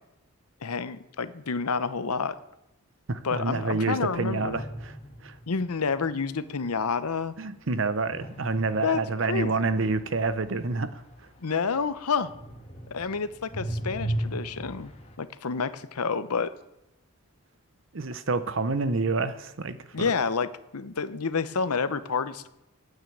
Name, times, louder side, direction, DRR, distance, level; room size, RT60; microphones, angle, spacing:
voice 1, 0.6-2.4 3.2-4.6 5.5-7.3 8.8-9.0 9.3-9.5 11.4-12.3 12.9-14.9 15.2-16.5 19.9-22.5, left 5 dB, 85° left, 13 dB, 0.8 m, -29 dB
voice 2, 3.1-5.0 5.2-5.4 7.4-11.0 17.9-20.1, right 3 dB, 60° right, 12 dB, 0.7 m, -28 dB
sound 1, 4.2-5.9 8.1-11.9 12.2-15.2, right 1 dB, 30° left, 1.4 m, -37 dB
9.3 x 9.0 x 8.4 m, 0.85 s
head